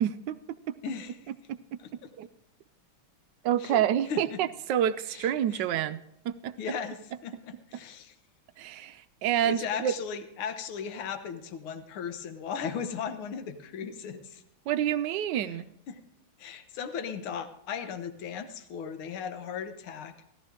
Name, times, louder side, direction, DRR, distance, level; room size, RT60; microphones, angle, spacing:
voice 1, 0.0-0.4 1.5-1.6 2.2-2.3 3.4-6.5 8.6-10.0 14.7-15.7, right 10 dB, 75° right, 12 dB, 1.0 m, -28 dB
voice 2, 0.8-1.2 1.8-2.1 3.6-3.8 4.1-4.4 5.1-5.3 5.5-5.6 6.6-8.1 9.4-14.4 15.9-16.0 16.4-20.1, left 7 dB, 75° left, 9 dB, 1.9 m, -37 dB
17.0 x 12.5 x 3.6 m, 0.79 s
omnidirectional pair, 2.3 m